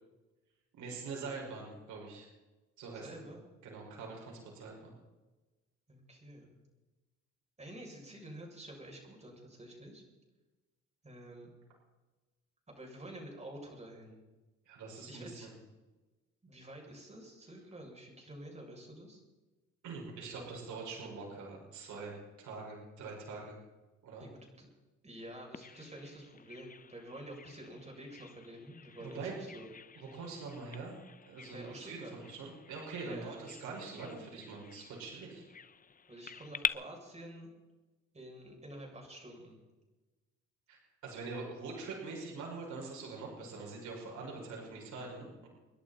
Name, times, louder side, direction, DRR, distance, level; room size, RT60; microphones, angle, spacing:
voice 1, 0.7-2.3 2.8-3.2 3.6-4.9 14.7-15.5 19.8-23.6 24.0-24.3 29.0-29.4 30.0-31.0 31.3-35.4 40.7-45.5, right 4 dB, 75° right, -2 dB, 5.9 m, -44 dB
voice 2, 2.9-3.5 5.9-6.5 7.6-10.0 11.0-11.5 12.7-14.2 15.1-15.5 16.4-19.2 24.2-24.7 25.0-29.7 31.5-32.1 33.0-33.4 36.1-37.5 38.1-39.6, right 1 dB, 20° right, 0 dB, 7.5 m, -49 dB
Bird vocalization bird call bird song, 25.5-36.7, left 6 dB, 30° left, 0.7 m, -45 dB
29.5 x 11.0 x 4.4 m, 1.2 s
cardioid pair, 90°, 30 cm